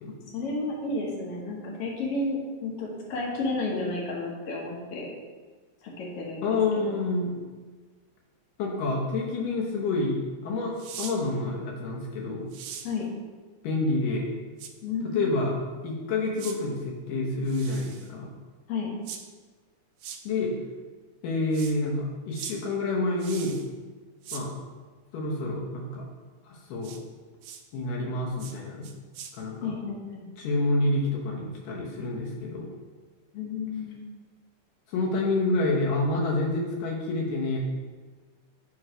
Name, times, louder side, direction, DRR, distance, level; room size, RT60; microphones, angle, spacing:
voice 1, 0.3-5.1 5.8-6.6 6.9-7.0 12.8-13.1 14.8-15.4 18.7-18.9 29.6-30.3 33.3-34.0, left 3 dB, 55° left, -2 dB, 1.8 m, -32 dB
voice 2, 6.4-7.4 8.6-10.2 10.4-12.5 13.6-14.3 15.0-15.5 15.8-18.3 20.2-20.5 21.2-23.6 24.3-24.5 25.1-26.0 26.4-26.9 27.7-28.9 29.4-29.7 30.4-32.7 34.9-37.6, left 2 dB, 75° left, -2 dB, 2.7 m, -28 dB
sound 1, 10.8-11.2 12.5-12.9 14.6-14.7 16.4-16.6 17.5-18.1 19.1-19.2 20.0-20.2 21.5-21.8 22.3-22.6 23.2-23.7 24.2-24.4 26.8-27.0 27.4-27.6 28.4-28.6 28.8-29.3, right 8 dB, 85° right, 1.6 m, -40 dB
9.2 x 3.2 x 5.0 m, 1.4 s
omnidirectional pair, 3.9 m